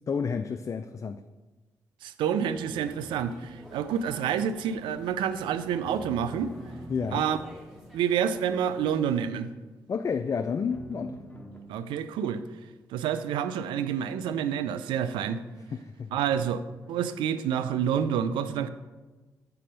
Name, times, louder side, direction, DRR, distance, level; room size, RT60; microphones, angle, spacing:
voice 1, 0.1-1.2 6.9-7.3 9.9-11.3 15.7-16.2, left 6 dB, 40° left, 0.3 m, -30 dB
voice 2, 2.0-6.5 7.1-7.4 7.9-9.5 11.7-12.4 12.9-15.4 16.1-18.7, right 8 dB, 75° right, 0.4 m, -28 dB
sound 1, 2.4-9.2, right 1 dB, 5° right, 1.8 m, -50 dB
sound 2, 5.8-8.2 10.7-11.6, right 1 dB, 15° left, 1.3 m, -44 dB
6.8 x 4.2 x 5.2 m
hypercardioid pair, 40°, 8 cm